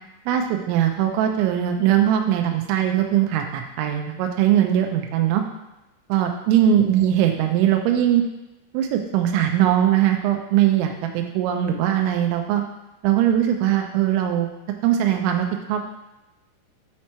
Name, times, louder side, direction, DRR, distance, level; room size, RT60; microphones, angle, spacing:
voice 1, 0.3-5.4 6.1-8.2 8.7-12.6 13.0-14.5 14.8-15.9, right 10 dB, 85° right, 3 dB, 2.9 m, -20 dB
8.3 x 3.0 x 4.3 m, 0.97 s
omnidirectional pair, 5.5 m